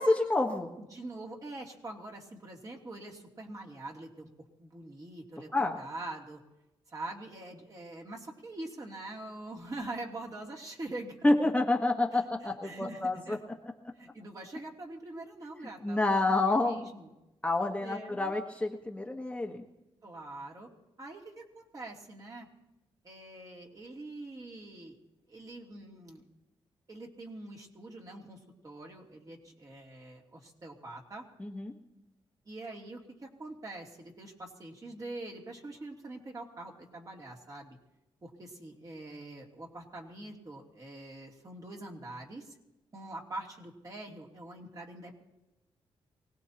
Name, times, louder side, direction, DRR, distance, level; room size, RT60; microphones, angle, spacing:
voice 1, 0.0-0.7 5.5-5.8 11.2-13.4 15.8-16.8 17.4-19.6 31.4-31.7, left 2 dB, 10° left, 1 dB, 1.4 m, -28 dB
voice 2, 0.8-4.3 4.6-6.4 6.9-11.3 12.1-13.4 13.9-17.1 17.8-18.3 20.0-20.7 21.0-22.5 23.0-25.0 25.3-26.2 26.9-31.2 32.4-37.8 38.2-42.5 42.9-45.2, right 2 dB, 35° right, -1 dB, 3.0 m, -44 dB
24.0 x 18.5 x 3.0 m, 0.97 s
cardioid pair, 95°, 10 cm